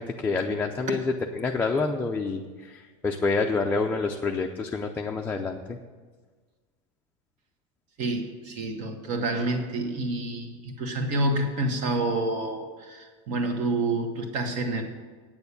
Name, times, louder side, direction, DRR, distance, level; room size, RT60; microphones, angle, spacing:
voice 1, 0.0-5.8, left 4 dB, 10° left, 1 dB, 0.5 m, -28 dB
voice 2, 8.0-14.8, right 2 dB, 45° right, 4 dB, 1.7 m, -28 dB
8.8 x 6.8 x 8.4 m, 1.4 s
supercardioid pair, 145°, 17 cm